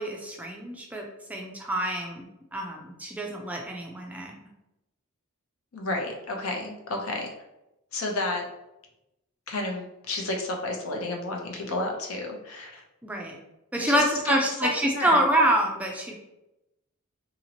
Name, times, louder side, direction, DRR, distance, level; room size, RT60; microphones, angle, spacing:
voice 1, 0.0-2.2 2.5-4.4 13.0-13.4 13.7-16.1, right 1 dB, 5° right, 1 dB, 0.3 m, -26 dB
voice 2, 5.7-7.3 7.9-8.4 9.5-12.8 13.8-15.2, left 2 dB, 65° left, 2 dB, 0.6 m, -31 dB
2.9 x 2.8 x 2.8 m, 0.92 s
head